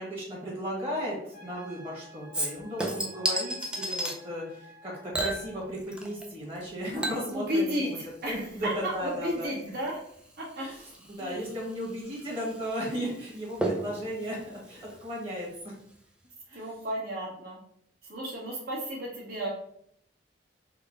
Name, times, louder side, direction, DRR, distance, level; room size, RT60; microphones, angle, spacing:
voice 1, 0.0-8.0 8.2-9.5 10.6-10.8 11.1-15.7 16.5-16.6, equal, 30° right, -5 dB, 1.4 m, -35 dB
Trumpet, 1.3-5.7, left 1 dB, 50° left, 0.7 m, -52 dB
Chink clink / Liquid, 2.3-4.2 5.1-6.3 6.5-15.6 15.9-16.0, right 1 dB, 5° right, 0.5 m, -36 dB
voice 2, 7.3-10.0 10.4-10.7 11.2-11.5 16.5-17.6 18.1-19.5, equal, 60° right, -5 dB, 1.4 m, -33 dB
3.7 x 2.2 x 3.5 m, 0.72 s
head